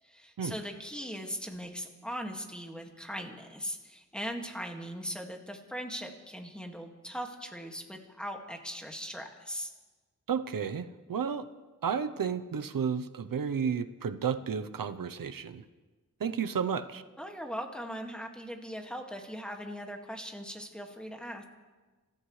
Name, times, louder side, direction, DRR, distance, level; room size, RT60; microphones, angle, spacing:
voice 1, 0.0-9.7 17.2-21.4, equal, 5° left, 2 dB, 2.0 m, -39 dB
voice 2, 10.3-11.4 11.8-15.6 16.2-17.0, right 7 dB, 80° right, 10 dB, 0.8 m, -32 dB
26.5 x 14.5 x 3.3 m, 1.3 s
wide cardioid pair, 75°, 33 cm